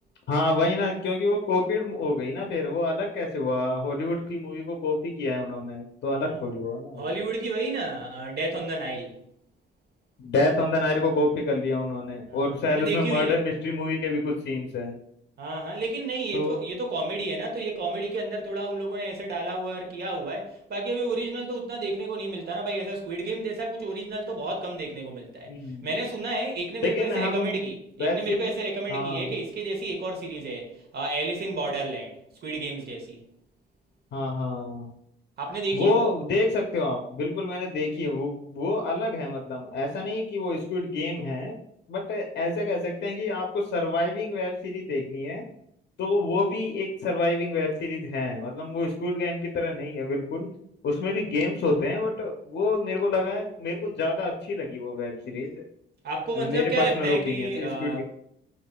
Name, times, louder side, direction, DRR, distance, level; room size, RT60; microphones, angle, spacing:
voice 1, 0.3-7.1 10.2-14.9 16.3-16.6 25.4-25.9 26.8-27.6 28.0-28.5 28.9-29.3 34.1-34.9 35.7-41.6 41.9-45.4 46.0-50.5 50.8-55.6 56.3-58.0, left 2 dB, 60° left, 2 dB, 0.6 m, -27 dB
voice 2, 7.0-9.1 12.3-13.4 15.4-25.5 25.8-33.2 35.4-36.1 56.0-58.0, right 2 dB, 55° right, 1 dB, 1.1 m, -31 dB
4.8 x 2.6 x 2.3 m, 0.72 s
cardioid pair, 90°, 20 cm